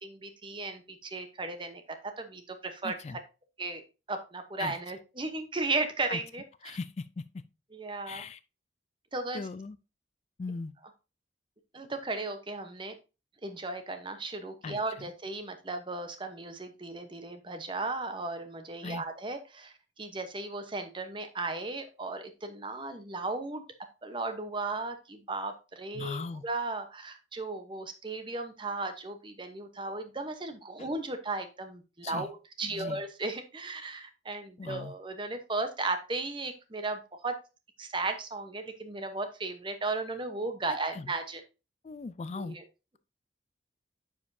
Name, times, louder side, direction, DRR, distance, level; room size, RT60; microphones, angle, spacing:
voice 1, 0.0-3.0 3.6-6.8 7.7-8.2 9.1-9.5 11.7-12.9 13.4-23.6 24.0-37.4 37.8-41.4 42.4-42.6, right 3 dB, 25° right, 0.9 m, -36 dB
voice 2, 2.8-3.2 4.6-4.8 6.1-6.2 6.6-7.2 8.1-8.4 9.3-9.8 10.4-10.7 14.6-14.8 18.8-19.0 25.9-26.4 30.8-30.9 32.0-32.3 32.6-33.0 34.6-34.9 40.9-41.1 41.8-42.6, left 4 dB, 35° left, 0.3 m, -38 dB
9.8 x 5.2 x 2.6 m
head